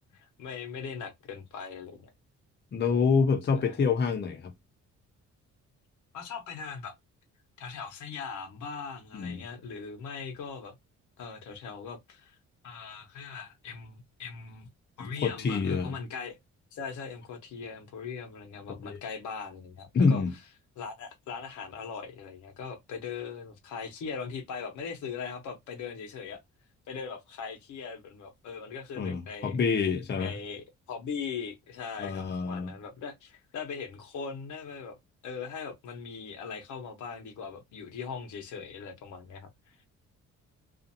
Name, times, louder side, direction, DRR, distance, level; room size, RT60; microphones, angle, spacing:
voice 1, 0.1-2.1 3.5-3.8 6.1-6.9 7.6-10.7 11.2-12.4 12.6-14.7 15.0-16.4 16.7-20.2 20.8-26.4 26.9-29.5 30.1-35.0 35.2-39.8, left 6 dB, 75° left, 1.0 m, -40 dB
voice 2, 2.7-4.5 9.1-9.4 15.0-15.9 18.9-19.0 19.9-20.3 29.0-30.3 32.0-32.7, left 5 dB, 35° left, 0.7 m, -27 dB
2.6 x 2.4 x 2.7 m
cardioid pair, 90°, 30 cm